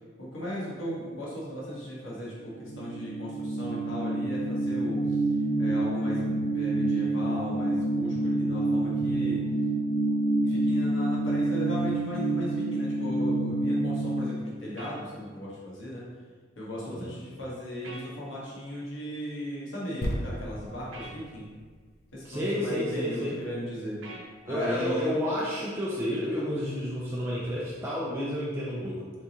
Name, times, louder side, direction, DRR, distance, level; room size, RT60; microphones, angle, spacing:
voice 1, 0.2-5.0 5.6-9.4 10.4-16.0 16.6-21.5 22.1-24.0 24.4-25.1, equal, 80° left, -6 dB, 1.2 m, -37 dB
sound 1, 2.5-14.2, right 2 dB, 25° left, 1.3 m, -27 dB
sound 2, 14.8-15.0 17.8-18.1 20.9-21.2 24.0-24.3, right 2 dB, 80° right, 0.7 m, -43 dB
sound 3, 20.0-23.6 24.2-24.3, equal, 55° left, 0.6 m, -37 dB
voice 2, 22.2-23.4 24.5-29.0, equal, 15° right, -7 dB, 0.5 m, -30 dB
3.9 x 3.5 x 2.9 m, 1.5 s
head